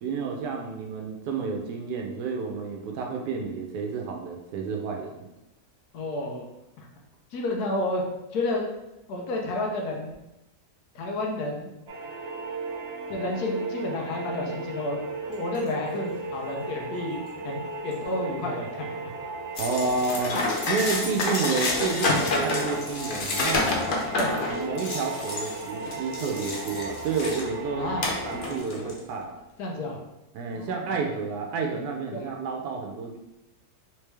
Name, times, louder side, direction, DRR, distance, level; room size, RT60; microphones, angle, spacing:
voice 1, 0.0-5.1 19.6-20.4 20.7-23.7 24.5-27.9 28.2-29.4 30.3-33.2, right 4 dB, 85° right, 1 dB, 1.1 m, -30 dB
voice 2, 5.9-6.5 6.8-6.9 7.3-8.0 8.3-8.7 9.1-10.1 10.9-11.7 13.1-15.0 15.3-19.0 24.1-24.6 27.8-28.1 29.6-30.0 30.5-30.9 32.1-32.2, left 2 dB, 75° left, 0 dB, 1.3 m, -31 dB
sound 1, 11.9-28.6, right 3 dB, 60° right, 0.7 m, -36 dB
sound 2, 15.3-18.1 18.4-18.5 19.8-23.4, left 2 dB, 15° left, 1.1 m, -48 dB
sound 3, 19.6-27.5 28.0-29.0, left 2 dB, 55° left, 0.6 m, -29 dB
3.5 x 3.2 x 3.3 m, 0.94 s
omnidirectional pair, 1.7 m